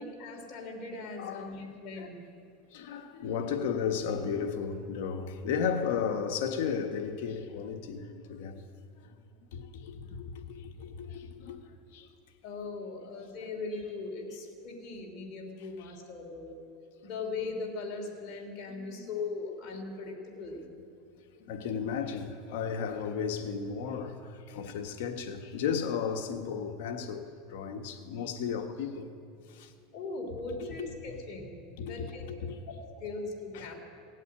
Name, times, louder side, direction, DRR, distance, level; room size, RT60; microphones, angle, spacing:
voice 1, 0.0-2.2 12.4-16.6 17.0-20.6 29.9-32.2 32.7-33.9, left 3 dB, 45° left, 3.3 m, -39 dB
voice 2, 1.2-1.6 1.9-2.1 2.7-8.7 9.0-9.1 9.5-11.6 11.9-12.1 15.8-15.9 18.7-19.1 19.7-19.8 21.3-29.1 29.5-29.7 30.8-30.9 31.8-32.5 33.5-33.7, left 6 dB, 70° left, 1.4 m, -34 dB
18.0 x 8.2 x 8.6 m
supercardioid pair, 125°, 0 cm